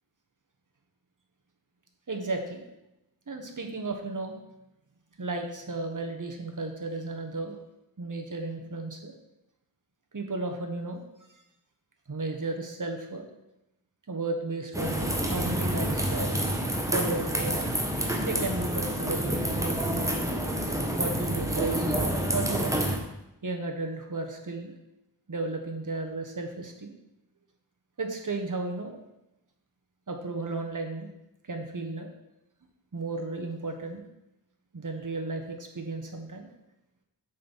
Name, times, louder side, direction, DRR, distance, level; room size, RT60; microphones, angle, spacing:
voice 1, 2.1-2.6 3.3-4.4 5.2-7.6 8.0-9.1 10.1-11.0 12.1-13.2 14.1-16.4 16.9-17.7 18.2-20.1 21.0-21.9 22.3-22.8 23.4-24.7 25.3-26.9 28.0-29.0 30.1-31.1 31.5-32.1 32.9-34.0 34.7-36.5, right 3 dB, 55° right, 4 dB, 1.3 m, -34 dB
sound 1, 14.7-23.0, right 1 dB, 10° right, 1.2 m, -28 dB
6.7 x 5.3 x 5.5 m, 0.89 s
wide cardioid pair, 45°, 38 cm